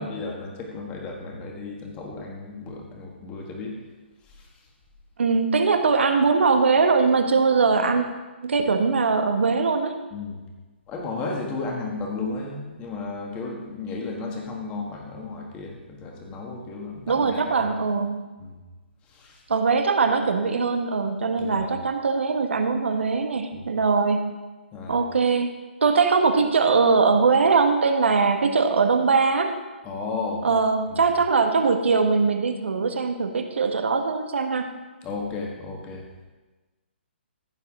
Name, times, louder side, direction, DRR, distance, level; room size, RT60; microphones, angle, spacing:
voice 1, 0.0-3.7 4.3-4.5 10.1-10.4 10.9-17.8 18.4-18.6 19.1-19.4 21.4-21.7 23.5-23.7 24.7-25.0 29.8-30.5 30.9-31.0 35.0-36.0, left 3 dB, 15° left, 0 dB, 1.6 m, -34 dB
voice 2, 5.2-8.1 8.4-9.9 17.1-18.2 19.5-24.3 24.9-25.5 25.8-29.5 30.4-34.7, right 4 dB, 75° right, 6 dB, 1.3 m, -21 dB
15.0 x 6.9 x 3.7 m, 1.2 s
hypercardioid pair, 160°, 6 cm